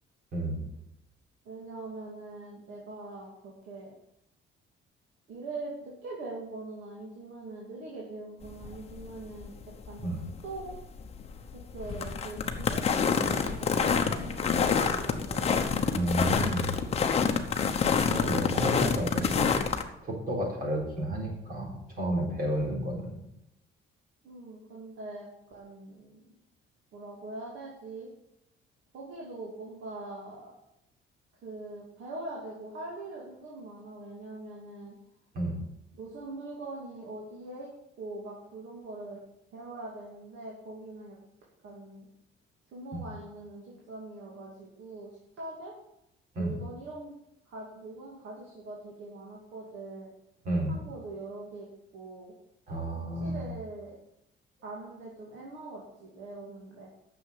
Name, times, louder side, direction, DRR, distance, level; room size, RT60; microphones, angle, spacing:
voice 1, 0.3-0.6 10.0-10.2 15.9-16.8 18.1-19.6 20.0-23.1 35.3-35.6 42.9-43.0 46.4-46.5 50.5-50.8 52.7-53.4, right 1 dB, 45° right, -1 dB, 3.8 m, -31 dB
voice 2, 1.4-4.0 5.3-10.2 10.4-10.7 11.5-15.8 24.2-26.3 26.9-28.1 28.9-30.5 31.4-34.9 35.9-37.7 38.0-39.2 39.5-41.2 41.6-42.1 42.7-45.7 46.4-47.2 47.5-50.1 50.7-51.7 51.9-52.3 52.9-53.9 54.6-56.9, right 2 dB, 65° right, -3 dB, 2.6 m, -42 dB
sound 1, 8.4-19.8, left 6 dB, 30° left, 0.9 m, -28 dB
9.6 x 6.9 x 8.2 m, 0.84 s
cardioid pair, 175°, 21 cm